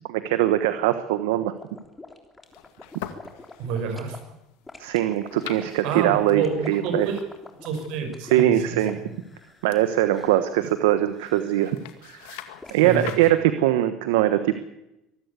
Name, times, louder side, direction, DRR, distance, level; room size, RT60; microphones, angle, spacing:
voice 1, 0.1-1.5 4.8-7.1 8.2-9.0 9.6-12.4 12.7-14.6, right 13 dB, 90° right, 10 dB, 1.2 m, -22 dB
sound 1, 1.6-4.2 4.7-9.8 10.1-10.5 11.1-11.7 12.6-13.1, left 3 dB, 15° left, 3.4 m, -45 dB
sound 2, 2.4-13.3, left 12 dB, 85° left, 2.2 m, -45 dB
voice 2, 3.6-4.2 5.8-7.2 7.6-9.0 12.8-13.0, right 5 dB, 70° right, 6 dB, 5.7 m, -28 dB
24.5 x 13.0 x 8.3 m, 0.88 s
supercardioid pair, 100°, 0 cm